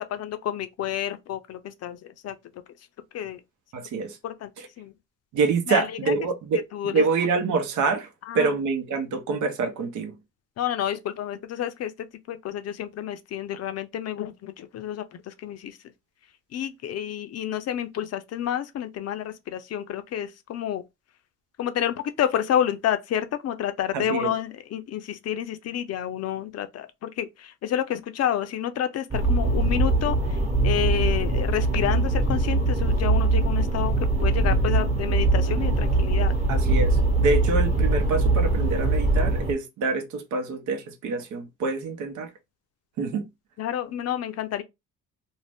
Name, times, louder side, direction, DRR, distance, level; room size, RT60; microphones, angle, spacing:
voice 1, 0.1-2.4 3.1-3.4 4.2-4.5 4.8-4.9 5.7-6.1 6.7-7.0 8.3-8.5 10.6-11.9 12.3-15.8 16.5-20.8 21.6-36.3 43.6-44.6, left 10 dB, 55° left, 0.5 m, -29 dB
voice 2, 3.7-4.2 5.3-8.1 8.3-10.1 23.9-24.3 36.5-36.9 37.2-42.3 43.0-43.2, right 4 dB, 75° right, 0.8 m, -26 dB
sound 1, 29.1-39.5, right 2 dB, 20° right, 0.9 m, -22 dB
2.6 x 2.1 x 3.3 m
cardioid pair, 90°, 30 cm